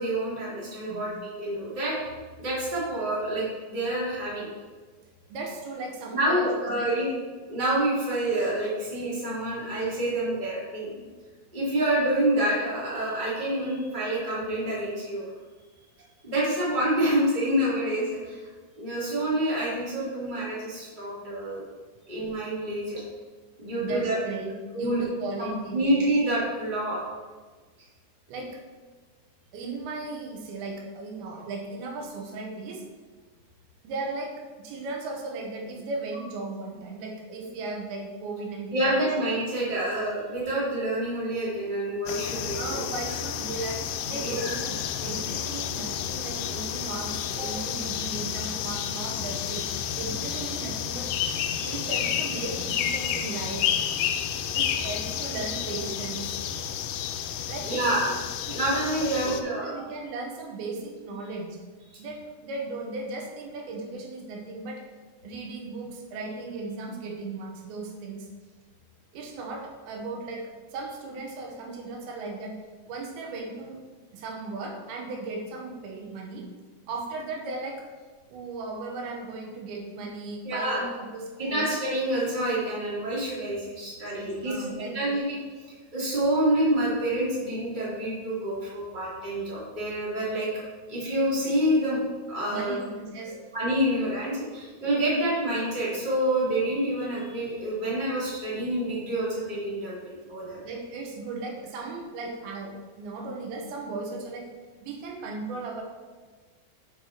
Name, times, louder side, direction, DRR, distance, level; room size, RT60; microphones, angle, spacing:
voice 1, 0.0-1.9 2.4-4.5 6.1-7.1 7.5-10.9 11.5-15.2 16.2-18.4 18.8-21.6 22.1-23.0 23.6-24.2 24.7-25.0 25.4-27.0 38.7-42.8 44.2-44.5 46.4-46.5 51.5-51.8 57.6-58.2 58.5-59.7 80.4-80.8 81.4-84.5 84.9-85.4 85.9-90.6 90.9-92.0 92.3-92.8 93.5-100.6, right 1 dB, 20° right, -8 dB, 1.6 m, -27 dB
voice 2, 5.3-7.1 23.8-26.0 28.3-28.6 29.5-32.8 33.8-39.1 42.6-51.1 51.6-53.7 54.5-56.4 57.5-57.9 58.5-58.7 59.0-61.6 62.0-64.8 65.2-68.3 69.1-72.5 72.9-73.8 74.1-76.5 76.9-77.9 78.3-81.7 84.1-85.0 92.5-93.4 93.9-94.2 100.6-104.5 104.8-105.8, right 3 dB, 75° right, 0 dB, 2.9 m, -36 dB
sound 1, 42.1-59.4, left 9 dB, 85° left, 2.5 m, -31 dB
6.6 x 5.4 x 4.4 m, 1.4 s
omnidirectional pair, 4.5 m